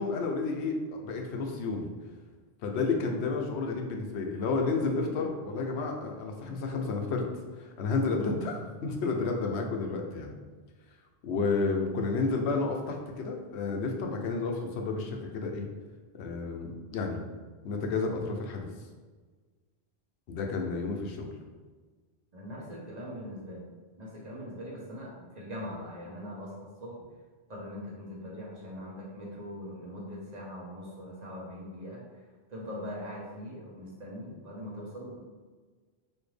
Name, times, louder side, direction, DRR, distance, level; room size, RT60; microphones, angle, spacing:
voice 1, 0.0-1.9 2.6-7.2 7.6-10.4 11.2-15.7 16.2-17.2 17.6-18.7 20.3-21.3, left 4 dB, 85° left, 2 dB, 0.9 m, -31 dB
voice 2, 22.3-23.7 24.0-26.5 26.8-26.9 27.5-32.0 32.5-35.2, equal, 40° right, -5 dB, 1.1 m, -41 dB
4.2 x 2.6 x 3.2 m, 1.4 s
omnidirectional pair, 1.1 m